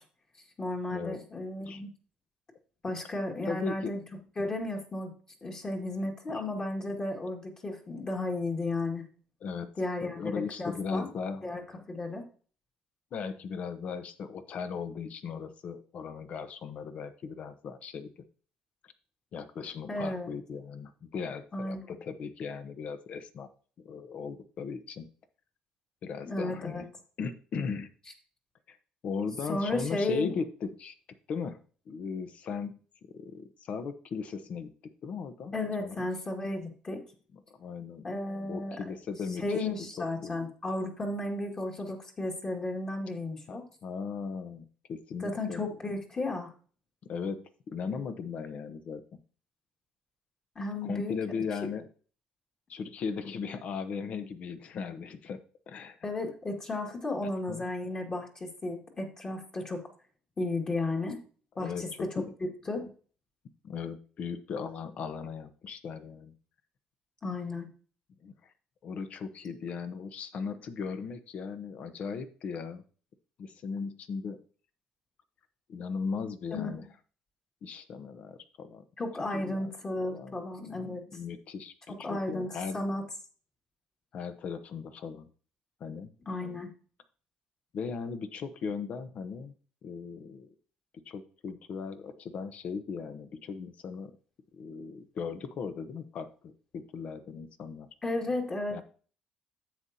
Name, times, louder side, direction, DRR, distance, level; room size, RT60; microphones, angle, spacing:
voice 1, 0.6-1.9 2.8-4.0 4.4-5.1 5.4-9.0 9.8-10.3 10.6-11.1 11.4-12.3 19.9-20.3 21.5-21.8 26.2-26.8 29.5-30.3 35.5-37.0 38.0-38.8 39.4-43.7 45.2-46.5 50.6-51.1 56.0-59.8 60.4-61.2 61.6-62.2 62.7-62.9 67.2-67.7 76.5-76.7 79.0-81.0 81.9-83.0 86.3-86.7 98.0-98.8, left 2 dB, 30° left, -1 dB, 2.1 m, -34 dB
voice 2, 3.5-3.9 6.3-6.4 9.4-9.7 10.0-11.5 13.1-18.1 19.3-23.5 23.8-25.1 26.0-26.9 27.2-27.9 28.7-28.8 29.0-30.9 31.3-31.6 31.9-32.8 33.1-34.7 35.0-36.1 37.5-38.0 38.5-39.7 40.0-40.3 43.5-45.7 47.1-49.0 50.8-51.9 52.7-55.4 55.7-56.0 57.5-57.7 61.6-62.3 63.6-66.3 68.2-68.3 68.8-72.8 73.4-74.4 75.7-76.8 77.6-78.8 79.3-79.7 80.0-82.8 84.1-85.3 85.8-86.1 87.7-89.5 89.8-90.5 91.1-94.1 94.5-97.9 98.7-98.8, left 5 dB, 55° left, 10 dB, 1.0 m, -37 dB
10.5 x 7.6 x 2.8 m, 0.41 s
cardioid pair, 100°, 3 cm